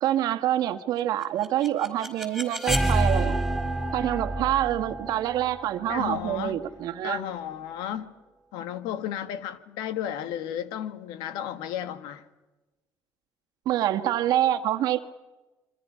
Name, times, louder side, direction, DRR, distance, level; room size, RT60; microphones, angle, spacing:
voice 1, 0.0-3.4 3.9-7.2 13.6-15.0, right 12 dB, 70° right, 1.5 m, -26 dB
sound 1, 1.2-7.1, right 1 dB, ahead, 5.0 m, -29 dB
voice 2, 5.9-6.6 7.0-8.1 8.5-12.2, left 10 dB, 85° left, 1.5 m, -33 dB
27.5 x 24.5 x 5.6 m
cardioid pair, 105°, 7 cm